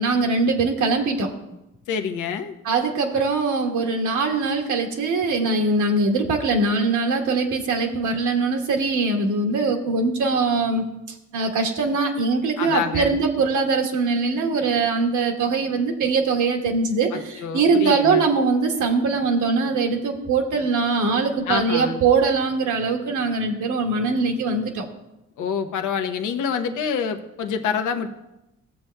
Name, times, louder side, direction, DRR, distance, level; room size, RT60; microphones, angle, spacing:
voice 1, 0.0-1.3 2.6-10.8 11.3-24.8, right 4 dB, 80° right, 3 dB, 1.2 m, -22 dB
voice 2, 1.9-2.5 12.6-13.2 17.1-18.2 21.5-22.0 25.4-28.1, left 6 dB, 80° left, 6 dB, 0.9 m, -27 dB
14.5 x 7.2 x 2.2 m, 0.91 s
cardioid pair, 90°, 30 cm